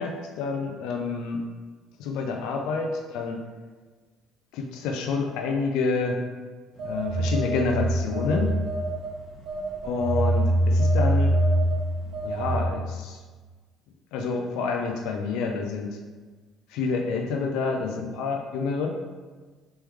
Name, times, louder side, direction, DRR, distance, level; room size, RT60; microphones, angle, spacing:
voice 1, 0.0-1.4 2.0-3.4 4.5-6.2 6.8-8.6 9.8-11.3 12.1-13.2 14.1-16.0 16.7-18.9, left 4 dB, 80° left, 3 dB, 0.4 m, -28 dB
Telephone, 6.8-9.1 9.5-12.6, right 1 dB, 55° right, 0.7 m, -24 dB
3.1 x 3.1 x 3.4 m, 1.4 s
supercardioid pair, 95°, 0 cm